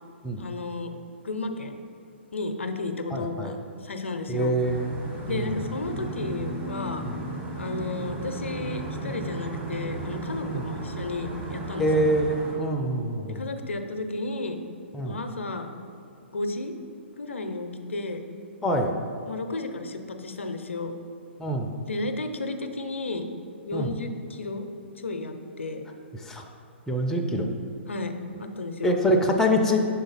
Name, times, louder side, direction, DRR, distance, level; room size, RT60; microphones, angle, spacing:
voice 1, 0.4-1.0 1.2-1.8 2.3-3.6 3.8-4.5 5.3-7.1 7.6-11.9 13.3-14.6 15.0-15.7 16.3-16.7 17.2-18.2 19.3-20.9 21.8-23.4 23.6-24.7 25.0-25.8 27.9-29.0, left 2 dB, 80° left, 7 dB, 0.5 m, -33 dB
voice 2, 3.1-3.5 4.3-5.0 5.3-5.6 7.0-7.2 10.4-10.7 11.8-13.4 14.9-15.2 18.6-18.9 21.4-21.7 23.7-23.9 26.2-26.4 26.9-27.5 28.8-29.8, equal, 5° left, 2 dB, 0.5 m, -25 dB
sound 1, 4.6-12.5, right 2 dB, 20° right, 1.0 m, -35 dB
6.4 x 4.0 x 4.0 m, 2.5 s
figure-of-eight pair, 125°, 7 cm